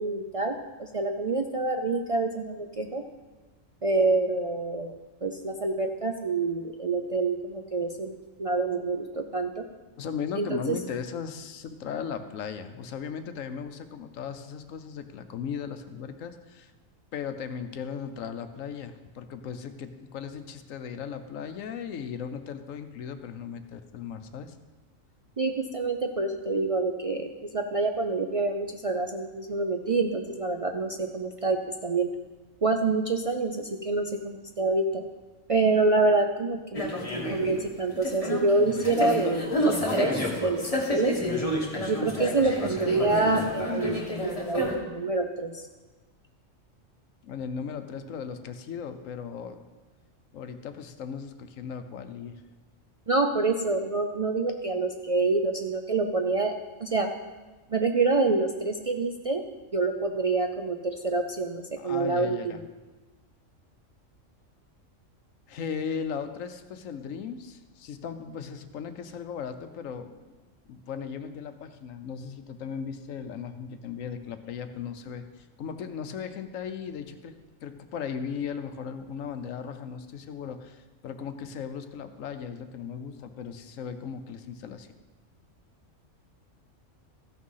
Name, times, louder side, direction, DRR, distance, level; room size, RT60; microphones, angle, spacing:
voice 1, 0.0-3.0 3.8-4.9 5.2-8.1 8.4-9.6 10.4-10.8 25.4-32.1 32.6-35.0 35.5-40.1 40.4-41.2 41.9-45.6 53.1-56.5 56.8-57.1 57.7-59.4 59.7-62.6, right 3 dB, 60° right, 4 dB, 0.3 m, -27 dB
voice 2, 10.0-16.7 17.1-24.6 47.2-49.6 50.3-52.4 61.8-62.6 65.5-70.2 70.7-77.4 77.6-84.9, left 7 dB, 80° left, 9 dB, 1.1 m, -37 dB
sound 1, 36.7-44.7, left 1 dB, 25° left, 1.6 m, -29 dB
14.0 x 6.3 x 5.6 m, 1.2 s
omnidirectional pair, 1.4 m